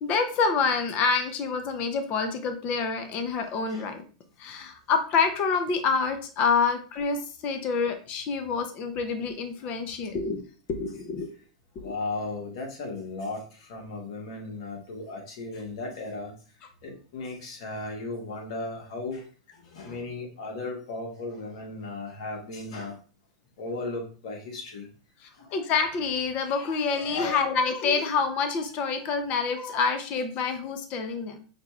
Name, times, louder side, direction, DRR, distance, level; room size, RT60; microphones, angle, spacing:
voice 1, 0.0-4.0 4.4-10.4 10.7-11.3 11.8-11.9 25.2-31.4, left 5 dB, 40° left, 0.6 m, -27 dB
voice 2, 11.8-16.3 16.8-19.2 19.5-23.0 23.6-24.9 25.4-25.6 27.0-27.4, left 3 dB, 65° left, 1.4 m, -36 dB
5.0 x 2.3 x 3.1 m
hypercardioid pair, 125°, 3 cm